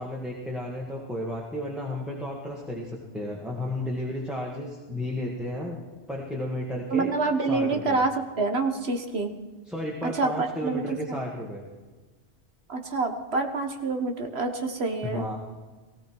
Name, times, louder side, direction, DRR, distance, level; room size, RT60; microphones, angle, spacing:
voice 1, 0.0-5.8 6.1-7.1 7.5-8.0 9.7-11.6 15.0-15.4, left 1 dB, ahead, -3 dB, 1.9 m, -33 dB
voice 2, 6.9-9.3 10.1-11.2 12.7-15.2, right 3 dB, 60° right, 5 dB, 1.7 m, -27 dB
17.5 x 16.5 x 4.7 m, 1.3 s
omnidirectional pair, 1.2 m